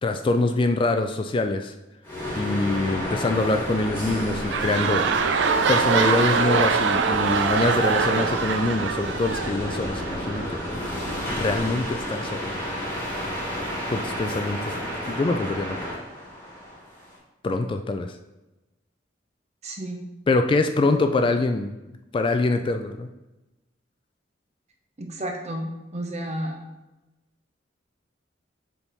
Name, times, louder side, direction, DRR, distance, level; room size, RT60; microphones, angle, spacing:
voice 1, 0.0-1.7 2.4-5.0 5.7-10.6 11.3-12.5 13.9-15.8 17.4-18.2 20.3-21.7 22.1-23.1, left 2 dB, 30° left, 6 dB, 0.3 m, -24 dB
sound 1, 2.0-17.2, equal, 15° left, 1.5 m, -31 dB
sound 2, 4.0-10.4 11.1-11.2, right 5 dB, 70° right, 0.5 m, -23 dB
voice 2, 19.6-20.0 25.0-26.6, right 1 dB, 35° right, 3 dB, 0.8 m, -32 dB
7.1 x 3.6 x 4.0 m, 1.0 s
head